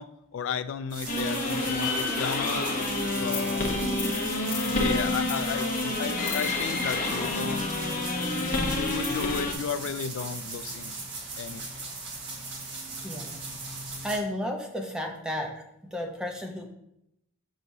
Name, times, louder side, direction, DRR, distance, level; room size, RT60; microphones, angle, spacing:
voice 1, 0.0-2.7 3.2-3.7 4.6-7.7 8.7-10.9 11.4-11.9, left 6 dB, 65° left, 13 dB, 0.3 m, -34 dB
sound 1, 0.9-14.2, right 3 dB, 60° right, 1.5 m, -38 dB
sound 2, 1.1-9.5, left 2 dB, 40° left, 0.9 m, -28 dB
voice 2, 13.0-13.4 14.0-15.6 15.9-16.7, equal, 5° right, 2 dB, 0.7 m, -33 dB
6.3 x 6.1 x 2.7 m, 0.81 s
head